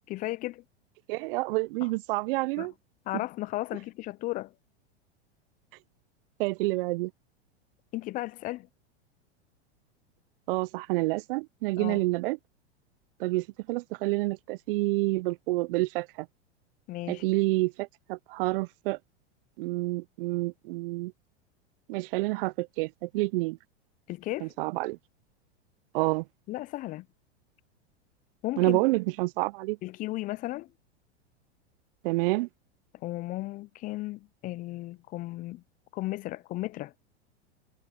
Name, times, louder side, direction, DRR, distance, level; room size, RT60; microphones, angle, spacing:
voice 1, 0.1-0.6 1.8-1.9 2.6-2.7 3.1-4.5 7.9-8.7 11.8-12.0 16.9-17.2 24.1-24.5 26.5-27.1 28.4-28.9 29.8-30.7 32.9-35.6 35.9-36.9, left 18 dB, 25° left, 0.4 m, -35 dB
voice 2, 1.1-2.7 6.4-7.1 10.5-12.4 13.2-16.3 17.1-19.0 19.6-21.1 21.9-23.6 24.4-25.0 25.9-26.2 28.6-29.8 32.0-32.5, right 22 dB, 55° right, 0.5 m, -28 dB
hypercardioid pair, 105°, 34 cm